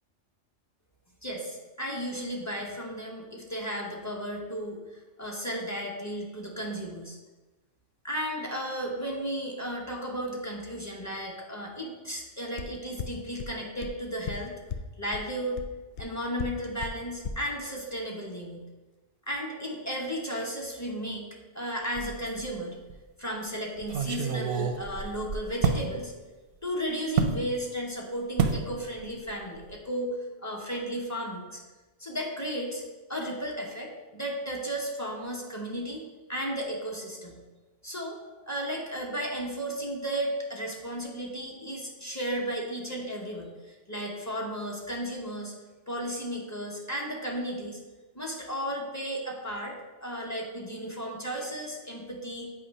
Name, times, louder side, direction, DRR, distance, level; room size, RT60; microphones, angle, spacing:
voice 1, 1.2-4.8 5.2-7.2 8.0-14.5 15.0-15.6 16.0-18.7 19.3-21.3 21.5-22.8 23.2-26.1 26.6-30.1 30.4-31.6 32.0-32.8 33.1-37.4 37.8-38.2 38.5-45.5 45.9-47.8 48.1-49.7 50.0-52.5, equal, 15° left, -1 dB, 0.9 m, -34 dB
sound 1, 12.6-12.7 13.0-13.1 13.4-13.5 13.8-13.9 14.3-14.4 14.7-14.8 15.1-15.2 15.6-15.7 16.0-16.1 16.4-16.5 16.8-16.9 17.2-17.3, left 7 dB, 65° left, 0.4 m, -33 dB
sound 2, 21.9-22.5 22.9-23.0 23.8-25.9 27.2-27.4 28.4-28.7 29.0-29.3 29.6-29.7, right 6 dB, 55° right, 0.7 m, -28 dB
8.0 x 3.0 x 5.3 m, 1.2 s
omnidirectional pair, 1.3 m